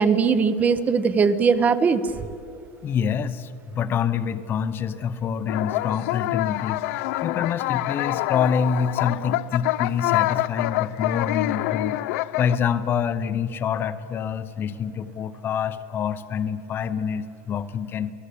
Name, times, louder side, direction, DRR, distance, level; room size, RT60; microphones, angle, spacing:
voice 1, 0.0-2.0, right 5 dB, 20° right, 13 dB, 1.0 m, -20 dB
voice 2, 2.8-12.0 12.4-18.1, left 7 dB, 30° left, 12 dB, 0.9 m, -26 dB
sound 1, 5.5-12.6, left 17 dB, 75° left, 0.6 m, -26 dB
29.0 x 18.5 x 8.5 m, 2.5 s
cardioid pair, 160°, 8 cm